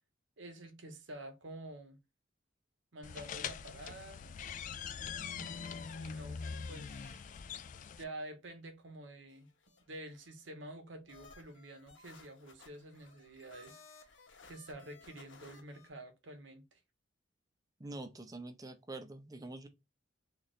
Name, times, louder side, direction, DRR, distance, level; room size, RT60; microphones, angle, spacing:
voice 1, 0.4-2.0 2.9-4.2 5.3-7.2 8.0-9.5 9.9-14.1 14.4-16.8, right 1 dB, 70° right, 0.9 m, -49 dB
sound 1, 3.0-8.0, left 6 dB, 40° left, 0.3 m, -43 dB
sound 2, 9.3-10.3 11.1-15.9, left 4 dB, 70° left, 1.0 m, -59 dB
voice 2, 17.8-19.7, right 2 dB, 20° right, 0.6 m, -45 dB
4.2 x 2.5 x 3.1 m
head